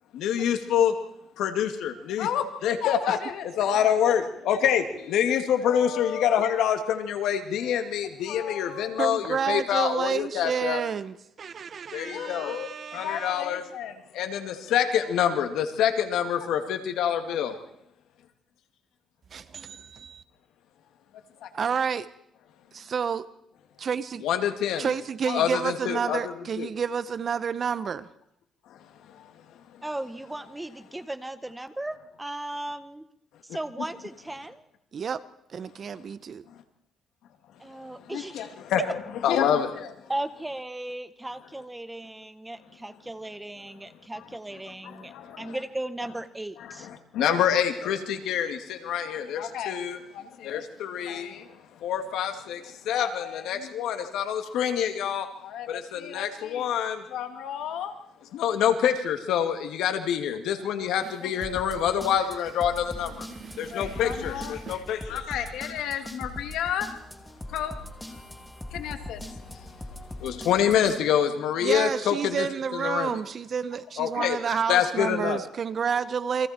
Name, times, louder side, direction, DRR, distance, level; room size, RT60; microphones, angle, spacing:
voice 1, 0.1-1.0 1.4-10.8 11.9-17.6 21.4-21.5 24.2-24.9 25.3-26.7 28.7-28.8 29.1-29.3 37.8-40.1 44.8-45.6 46.6-57.9 58.2-63.3 63.6-66.9 67.5-67.7 68.7-69.2 69.5-69.7 70.2-72.5 72.7-73.2 74.0-74.4 74.7-75.4, left 9 dB, 85° left, 2.5 m, -27 dB
voice 2, 9.0-13.5 19.3-20.2 21.5-22.1 22.7-23.3 23.8-24.2 24.8-28.1 34.9-35.2 35.5-36.4 63.2-64.8 71.6-76.5, right 6 dB, 50° right, 1.0 m, -30 dB
voice 3, 29.8-33.1 33.5-34.7 37.6-38.5 40.1-46.9, right 1 dB, 10° right, 1.6 m, -36 dB
sound 1, 61.4-71.0, left 1 dB, 5° left, 2.8 m, -41 dB
29.5 x 23.5 x 4.5 m
cardioid pair, 90°, 0 cm